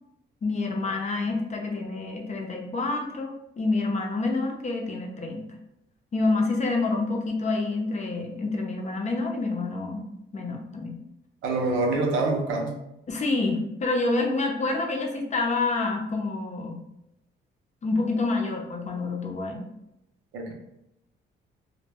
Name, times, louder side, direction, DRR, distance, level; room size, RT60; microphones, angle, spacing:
voice 1, 0.4-5.4 6.1-10.0 10.3-11.0 13.1-16.8 17.8-19.7, left 3 dB, 35° left, 2 dB, 0.6 m, -27 dB
voice 2, 11.4-12.7 20.3-20.5, right 2 dB, 90° right, 1 dB, 0.6 m, -25 dB
2.1 x 2.0 x 3.4 m, 0.85 s
cardioid pair, 90°, 20 cm